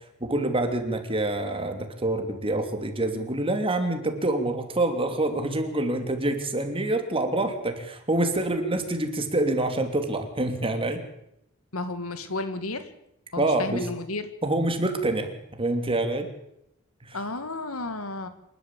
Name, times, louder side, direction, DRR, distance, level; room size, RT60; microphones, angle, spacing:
voice 1, 0.2-11.0 13.4-13.9 14.4-16.3 17.0-17.2, right 2 dB, 25° right, 6 dB, 3.1 m, -26 dB
voice 2, 11.7-12.8 13.3-14.3 17.1-18.3, left 2 dB, 85° left, 10 dB, 2.3 m, -32 dB
27.0 x 12.5 x 8.5 m, 0.79 s
head